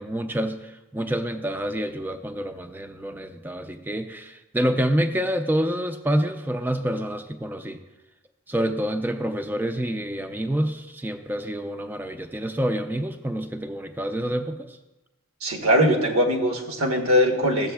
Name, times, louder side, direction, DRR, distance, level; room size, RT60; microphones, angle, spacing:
voice 1, 0.0-7.8 8.5-14.8, equal, 10° right, 7 dB, 0.3 m, -27 dB
voice 2, 15.4-17.7, equal, 85° right, 2 dB, 1.2 m, -21 dB
13.5 x 7.8 x 2.3 m, 1.0 s
head